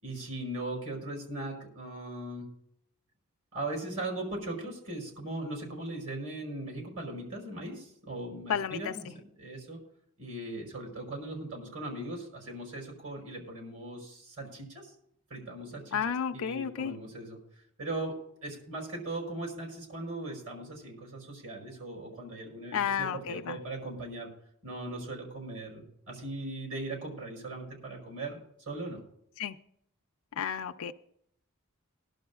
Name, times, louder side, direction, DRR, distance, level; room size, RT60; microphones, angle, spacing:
voice 1, 0.0-2.5 3.5-9.8 10.2-14.9 15.3-17.4 17.8-18.1 18.4-24.3 24.6-28.4 28.7-29.0, right 2 dB, 75° right, 0 dB, 5.7 m, -39 dB
voice 2, 8.5-8.9 15.9-16.9 22.7-23.6 29.4-29.5 30.4-30.9, left 7 dB, 65° left, 6 dB, 0.4 m, -32 dB
21.0 x 11.5 x 2.3 m, 0.72 s
head